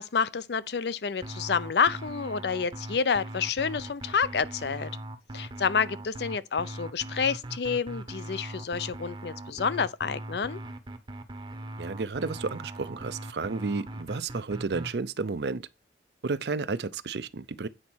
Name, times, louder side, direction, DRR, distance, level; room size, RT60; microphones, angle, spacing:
voice 1, 0.0-4.9 5.3-10.6, left 6 dB, 65° left, 0.5 m, -29 dB
sound 1, 1.2-14.9, right 1 dB, 25° right, 0.8 m, -40 dB
voice 2, 11.8-15.7 16.2-17.7, right 4 dB, 65° right, 0.5 m, -32 dB
8.8 x 4.1 x 6.2 m
head